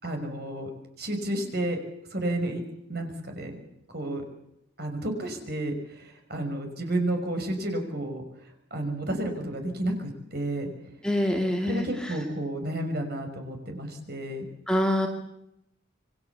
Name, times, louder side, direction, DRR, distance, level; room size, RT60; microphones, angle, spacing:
voice 1, 0.0-0.7 1.0-1.8 2.1-2.6 2.9-3.6 3.9-4.2 4.8-8.2 8.7-10.7 11.7-14.5, right 1 dB, 50° right, 5 dB, 5.7 m, -31 dB
voice 2, 11.0-12.1 14.7-15.1, left 1 dB, 5° left, 2 dB, 2.3 m, -25 dB
27.5 x 23.5 x 7.1 m, 0.82 s
head